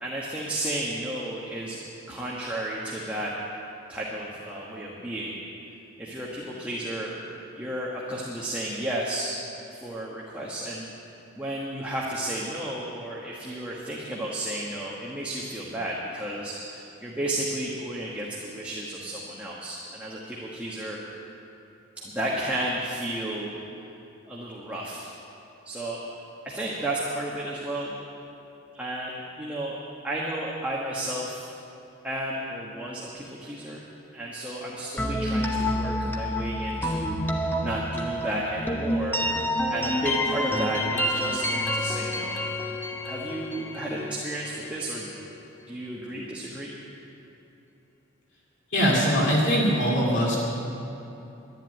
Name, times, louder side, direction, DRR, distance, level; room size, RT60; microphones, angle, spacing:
voice 1, 0.0-1.8 2.1-3.3 3.9-5.4 6.0-7.1 7.5-9.4 9.7-10.9 11.3-21.0 22.0-23.5 24.3-25.1 25.6-26.0 26.4-28.0 28.7-29.8 30.0-31.5 32.0-33.8 34.1-37.2 37.6-42.4 43.1-45.1 45.7-46.8, right 1 dB, 5° right, -5 dB, 1.3 m, -32 dB
sound 1, 35.0-44.7, left 1 dB, 10° left, 0.9 m, -28 dB
voice 2, 48.7-50.4, equal, 55° left, -3 dB, 2.5 m, -22 dB
11.5 x 11.0 x 9.1 m, 2.9 s
head